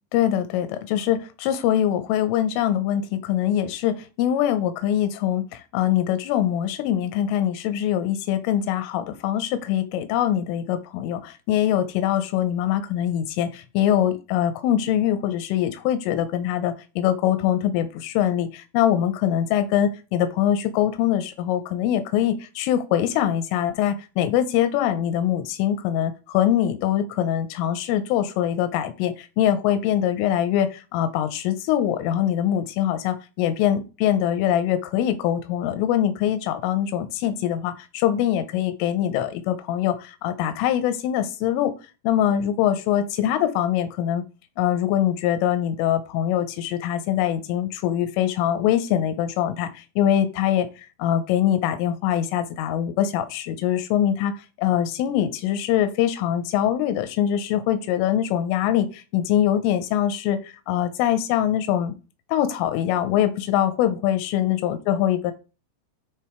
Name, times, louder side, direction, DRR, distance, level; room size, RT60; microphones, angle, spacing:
voice 1, 0.1-41.7 42.0-44.2 44.6-50.7 51.0-61.9 62.3-65.3, left 11 dB, 90° left, 10 dB, 3.3 m, -23 dB
10.5 x 3.6 x 4.5 m, 0.32 s
omnidirectional pair, 5.6 m